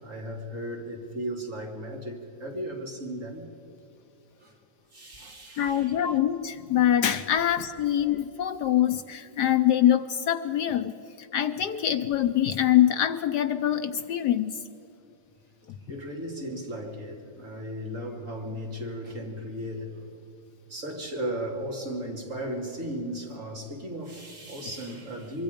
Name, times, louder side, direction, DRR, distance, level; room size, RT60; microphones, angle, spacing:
voice 1, 0.0-3.5 4.4-4.6 4.9-6.0 15.8-20.1 20.7-25.4, equal, 40° right, 3.0 m, -36 dB
voice 2, 5.6-14.5, left 11 dB, 70° left, 1.2 m, -24 dB
24.5 x 24.5 x 5.2 m
omnidirectional pair, 2.0 m